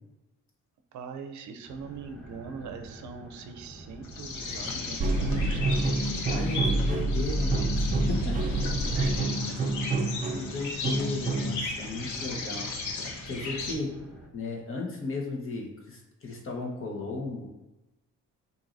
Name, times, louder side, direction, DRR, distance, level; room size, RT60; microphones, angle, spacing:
voice 1, 0.9-5.7 8.9-10.0, right 5 dB, 70° right, 6 dB, 0.6 m, -42 dB
sound 1, 1.7-14.3, right 1 dB, 5° left, 1.3 m, -48 dB
sound 2, 4.0-13.7, left 3 dB, 75° left, 0.9 m, -36 dB
sound 3, 5.0-11.7, right 2 dB, 30° right, 0.6 m, -27 dB
voice 2, 6.2-8.4 8.6-9.1 10.3-12.7 13.2-13.9 14.3-17.5, left 3 dB, 45° left, -1 dB, 1.3 m, -35 dB
7.2 x 2.8 x 2.6 m, 1.0 s
cardioid pair, 90°, 30 cm